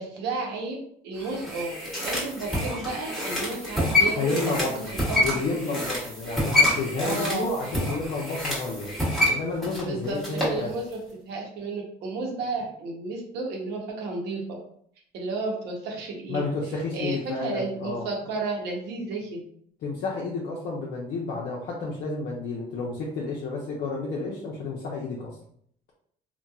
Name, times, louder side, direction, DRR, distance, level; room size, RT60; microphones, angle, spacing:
voice 1, 0.0-4.6 4.9-5.4 7.0-7.5 9.8-14.6 15.1-16.5 16.9-19.4, right 3 dB, 85° right, 0 dB, 0.7 m, -32 dB
sound 1, 1.2-10.6 10.9-11.0, left 1 dB, ahead, 1.0 m, -27 dB
voice 2, 4.1-8.9 9.3-10.7 16.3-18.0 19.8-25.4, left 3 dB, 65° left, -4 dB, 0.6 m, -31 dB
2.8 x 2.2 x 2.3 m, 0.65 s
cardioid pair, 110°, 17 cm